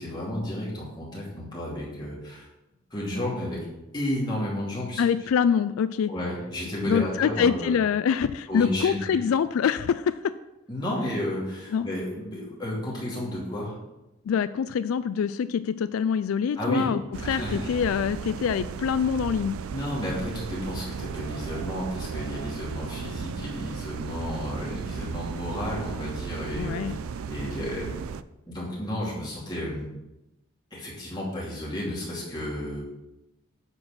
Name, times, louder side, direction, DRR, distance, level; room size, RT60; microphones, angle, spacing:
voice 1, 0.0-2.5 2.9-3.6 3.9-5.0 6.1-7.7 8.5-9.2 10.7-13.7 16.5-16.9 17.2-17.8 19.7-26.8 27.3-27.9 28.5-29.9 30.7-32.9, left 1 dB, 20° left, -5 dB, 2.6 m, -32 dB
voice 2, 5.0-6.1 6.8-10.3 11.7-11.9 14.3-19.6 26.6-27.0, left 7 dB, 85° left, 14 dB, 0.3 m, -25 dB
sound 1, 17.1-28.2, right 6 dB, 90° right, 0.4 m, -35 dB
9.7 x 4.4 x 5.8 m, 0.96 s
head